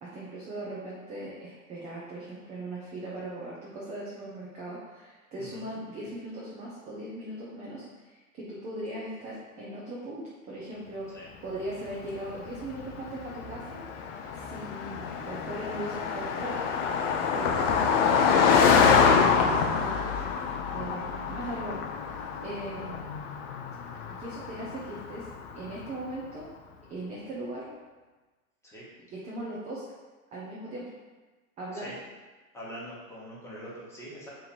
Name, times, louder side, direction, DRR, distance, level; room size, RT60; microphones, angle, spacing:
voice 1, 0.0-13.8 14.3-16.7 17.3-20.1 20.7-22.1 22.4-23.1 24.1-25.3 25.6-26.5 26.9-27.8 29.1-29.8 30.3-30.9 31.6-31.9, right 1 dB, 15° right, -6 dB, 0.4 m, -39 dB
Car passing by, 12.1-25.8, left 6 dB, 45° left, 0.4 m, -26 dB
voice 2, 32.5-34.3, equal, 5° left, -7 dB, 1.0 m, -44 dB
3.0 x 2.5 x 4.1 m, 1.3 s
hypercardioid pair, 100°, 44 cm